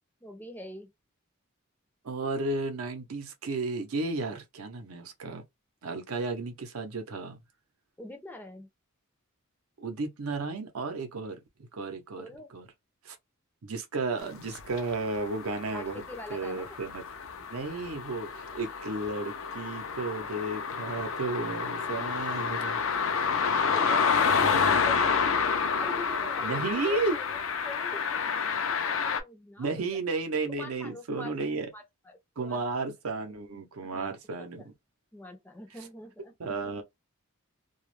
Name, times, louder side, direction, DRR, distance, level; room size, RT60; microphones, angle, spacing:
voice 1, 0.2-0.9 8.0-8.7 12.2-12.5 15.7-16.8 23.6-25.4 25.8-30.0 30.6-31.4 31.7-32.6 33.9-34.2 35.1-36.5, left 1 dB, 10° left, 0.5 m, -44 dB
voice 2, 2.0-5.4 5.8-7.4 9.8-11.4 11.7-12.2 12.5-12.7 13.0-13.2 13.6-16.0 16.3-17.0 17.5-22.8 24.4-24.6 26.4-27.2 29.6-31.7 32.4-34.7 36.4-36.8, right 3 dB, 85° right, 0.6 m, -33 dB
sound 1, 14.5-29.2, left 5 dB, 65° left, 0.4 m, -29 dB
2.3 x 2.0 x 3.0 m
head